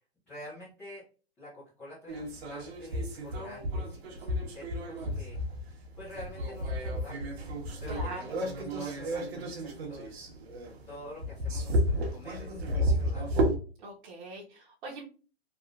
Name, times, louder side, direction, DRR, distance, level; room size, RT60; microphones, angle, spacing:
voice 1, 0.3-1.1 1.4-5.4 6.0-7.4 7.8-10.2 10.9-13.3, left 1 dB, 5° left, -9 dB, 0.4 m, -47 dB
sound 1, 2.1-13.6, equal, 70° right, 1.2 m, -32 dB
voice 2, 7.9-8.2 13.8-15.0, right 2 dB, 50° right, -3 dB, 1.0 m, -42 dB
3.5 x 2.4 x 2.4 m, 0.36 s
hypercardioid pair, 155°, 32 cm